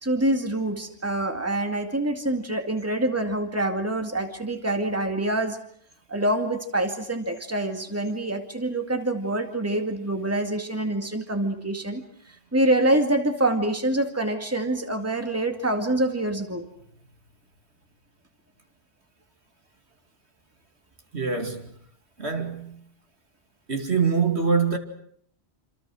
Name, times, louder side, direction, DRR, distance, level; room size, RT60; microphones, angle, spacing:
voice 1, 0.0-5.6 6.1-12.0 12.5-16.7, right 1 dB, 15° right, 2.2 m, -26 dB
voice 2, 21.1-21.7 22.2-22.8 23.7-24.8, right 5 dB, 75° right, 2.8 m, -24 dB
27.5 x 27.0 x 6.3 m
omnidirectional pair, 1.1 m